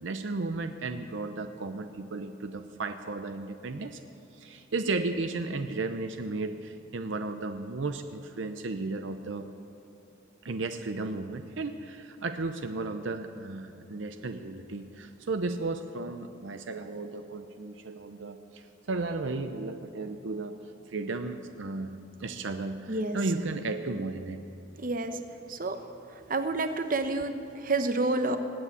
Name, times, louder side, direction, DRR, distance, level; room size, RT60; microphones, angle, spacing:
voice 1, 0.0-4.0 4.3-9.5 10.4-20.6 20.9-24.4, right 3 dB, 70° right, 8 dB, 0.6 m, -34 dB
voice 2, 24.8-25.2 25.5-25.8 26.3-28.4, right 2 dB, 45° right, 8 dB, 0.9 m, -29 dB
19.5 x 8.5 x 8.3 m, 2.7 s
head